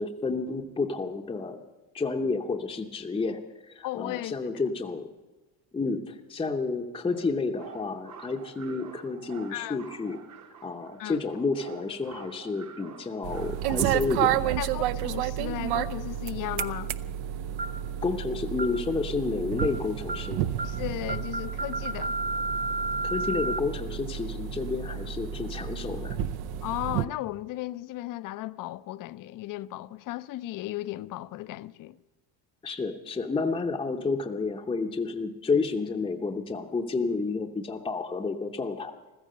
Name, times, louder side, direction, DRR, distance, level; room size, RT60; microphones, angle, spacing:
voice 1, 0.0-1.6 1.9-5.1 5.7-10.2 10.6-14.6 18.0-20.5 23.0-26.2 32.6-39.0, left 4 dB, 15° left, 0.7 m, -30 dB
voice 2, 3.8-4.5 9.5-9.8 11.0-11.2 14.6-16.9 20.6-22.2 26.6-32.0, left 16 dB, 55° left, 0.6 m, -35 dB
sound 1, 7.0-14.0, right 6 dB, 45° right, 1.2 m, -48 dB
sound 2, 13.2-27.1, right 10 dB, 70° right, 0.7 m, -31 dB
sound 3, 16.6-16.9 17.6-17.8 18.6-18.9 19.6-19.8 20.1-20.3 20.6-20.8 21.1-23.6, right 2 dB, 20° right, 0.4 m, -32 dB
15.0 x 14.0 x 6.6 m
cardioid pair, 150°, 40 cm